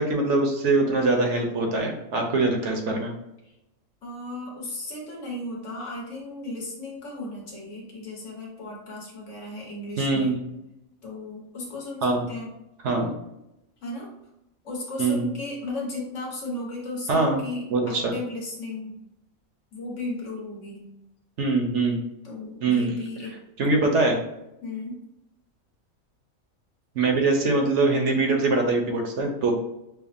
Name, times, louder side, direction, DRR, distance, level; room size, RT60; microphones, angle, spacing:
voice 1, 0.0-3.1 10.0-10.4 12.0-12.3 12.8-13.1 15.0-15.3 17.1-17.4 17.7-18.1 21.4-22.0 22.6-22.9 23.6-24.2 27.0-29.5, right 3 dB, 65° right, 2 dB, 0.9 m, -23 dB
voice 2, 4.0-10.3 11.0-12.5 13.8-14.1 14.6-19.0 19.7-20.9 22.2-23.4 24.6-25.0, left 2 dB, 65° left, -2 dB, 1.3 m, -35 dB
5.7 x 2.1 x 2.5 m, 0.87 s
omnidirectional pair, 1.4 m